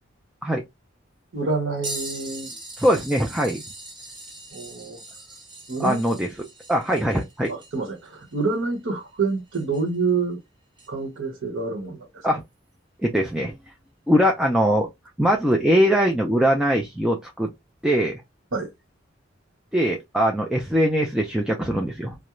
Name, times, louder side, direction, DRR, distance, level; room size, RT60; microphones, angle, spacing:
voice 1, 1.3-2.5 4.5-5.0 5.7-6.0 7.5-10.4 10.9-12.1 18.5-18.7, right 4 dB, 70° right, 0.9 m, -27 dB
sound 1, 1.8-10.0 10.8-10.9 13.2-13.3 14.3-14.5 15.5-15.6, right 2 dB, 25° right, 0.9 m, -40 dB
voice 2, 2.8-3.6 5.8-6.3 6.7-7.5 12.2-12.4 13.0-13.5 14.1-14.9 15.2-17.5 17.8-18.2 19.7-22.2, equal, 5° right, 0.3 m, -21 dB
2.3 x 2.1 x 2.9 m
head